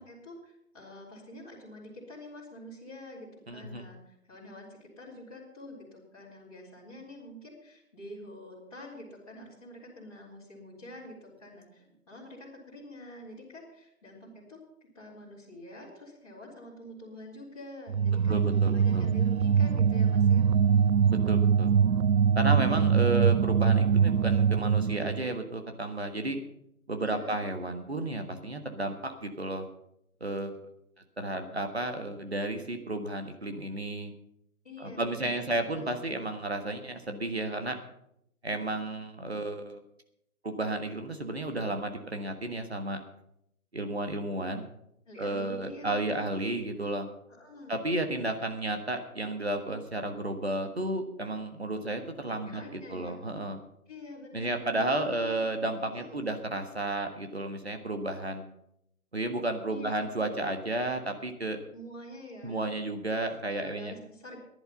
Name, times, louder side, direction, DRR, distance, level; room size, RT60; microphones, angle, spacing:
voice 1, 0.0-14.6 14.9-20.5 27.0-27.4 34.6-35.9 45.1-46.3 47.3-47.7 52.5-53.2 53.9-55.4 55.9-56.3 59.7-60.1 61.7-62.6 63.5-64.4, left 1 dB, 25° left, -8 dB, 3.9 m, -47 dB
voice 2, 3.5-3.8 18.3-19.1 21.3-21.7 22.3-26.4 26.9-29.6 30.2-30.6 31.2-34.1 34.8-37.8 38.4-39.8 40.4-43.0 43.7-44.7 45.2-47.1 47.7-53.6 54.3-58.5 59.1-61.6 62.4-63.9, right 2 dB, 45° right, 5 dB, 1.5 m, -32 dB
sound 1, 17.9-25.3, right 7 dB, 75° right, 0.5 m, -23 dB
15.0 x 11.0 x 5.6 m, 0.77 s
figure-of-eight pair, 160°, 44 cm